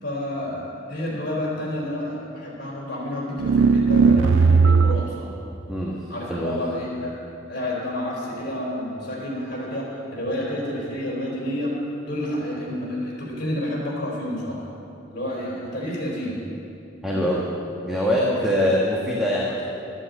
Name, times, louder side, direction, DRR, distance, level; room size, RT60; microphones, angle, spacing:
voice 1, 0.0-5.3 6.1-7.1 7.5-9.9 10.1-11.7 12.1-14.6 15.1-16.4 17.1-17.3 18.2-18.4, left 1 dB, 55° left, -5 dB, 4.0 m, -29 dB
sound 1, 3.4-5.2, right 5 dB, 85° right, 0.3 m, -17 dB
voice 2, 5.7-6.6 17.0-17.5 17.8-19.6, equal, 5° right, -5 dB, 1.4 m, -23 dB
12.5 x 8.8 x 8.6 m, 2.7 s
head